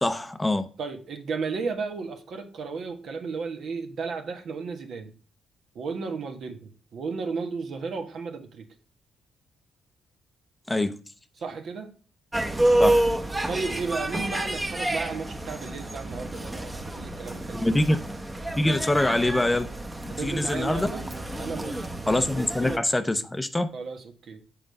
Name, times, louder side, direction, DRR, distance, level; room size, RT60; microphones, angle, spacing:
voice 1, 0.0-0.7 10.7-11.0 12.8-13.0 17.5-18.0 18.6-19.7 20.0-20.9 22.1-23.7, left 1 dB, 15° left, 0.6 m, -24 dB
voice 2, 0.8-5.2 5.7-8.7 11.4-12.0 13.5-17.7 20.1-21.1 21.4-21.9 23.7-24.4, right 4 dB, 60° right, 1.3 m, -34 dB
sound 1, 12.3-22.8, right 1 dB, 15° right, 1.0 m, -29 dB
7.5 x 5.0 x 5.3 m
cardioid pair, 90°, 0 cm